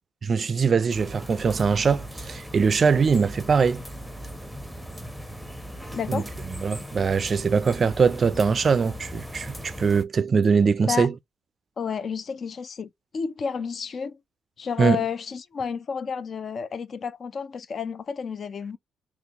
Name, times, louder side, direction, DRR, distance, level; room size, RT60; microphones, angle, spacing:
voice 1, 0.3-3.8 6.1-6.2 6.6-11.1 14.8-15.0, right 5 dB, 40° right, 0.4 m, -22 dB
sound 1, 0.9-10.0, equal, 5° left, 0.8 m, -38 dB
voice 2, 5.9-6.3 10.8-11.1 11.8-14.2 14.6-18.8, left 6 dB, 50° left, 0.5 m, -31 dB
3.8 x 3.0 x 2.9 m
cardioid pair, 90°, 0 cm